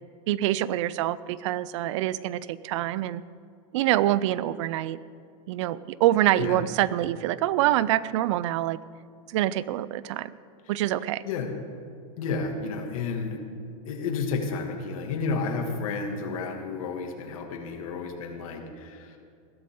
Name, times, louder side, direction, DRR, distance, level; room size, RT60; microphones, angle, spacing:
voice 1, 0.3-3.2 3.7-5.0 5.5-8.8 9.3-10.3 10.7-11.2, right 14 dB, 60° right, 18 dB, 0.5 m, -25 dB
voice 2, 12.2-13.4 13.8-19.2, left 4 dB, 75° left, 3 dB, 2.3 m, -31 dB
21.0 x 12.5 x 3.8 m, 2.4 s
supercardioid pair, 155°, 18 cm